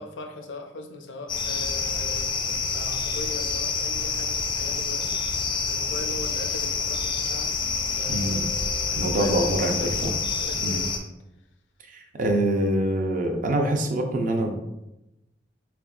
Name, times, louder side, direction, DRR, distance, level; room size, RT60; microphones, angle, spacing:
voice 1, 0.0-5.2 5.7-7.5 8.0-8.6 8.9-10.9, left 2 dB, 90° left, 4 dB, 0.5 m, -39 dB
sound 1, 1.3-11.0, left 5 dB, 25° left, 0.3 m, -27 dB
voice 2, 8.1-8.5 9.0-10.1 10.6-10.8 11.9-14.6, right 1 dB, 45° right, 3 dB, 0.5 m, -25 dB
3.5 x 3.4 x 2.4 m, 0.92 s
head